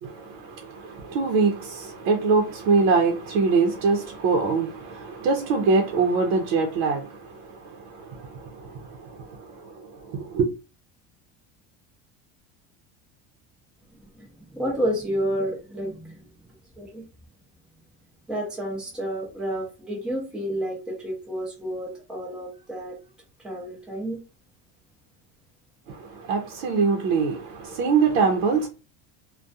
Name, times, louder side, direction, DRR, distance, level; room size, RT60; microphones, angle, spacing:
voice 1, 0.0-10.5 25.9-28.7, right 4 dB, 80° right, 0.7 m, -24 dB
voice 2, 14.5-16.1 16.8-17.0 18.3-23.0 23.4-24.2, equal, ahead, 0.6 m, -30 dB
2.3 x 2.2 x 2.6 m
cardioid pair, 165°, 36 cm